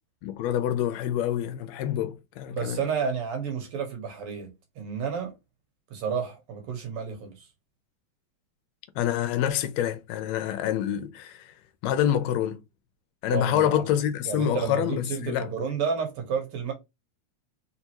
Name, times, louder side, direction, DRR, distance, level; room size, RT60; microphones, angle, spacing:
voice 1, 0.2-2.8 9.0-11.5 11.8-12.6 13.2-15.5, left 10 dB, 75° left, 1.7 m, -27 dB
voice 2, 2.5-5.3 5.9-7.4 13.3-13.8 14.3-16.7, right 6 dB, 60° right, 1.9 m, -31 dB
4.3 x 3.5 x 2.9 m
omnidirectional pair, 3.3 m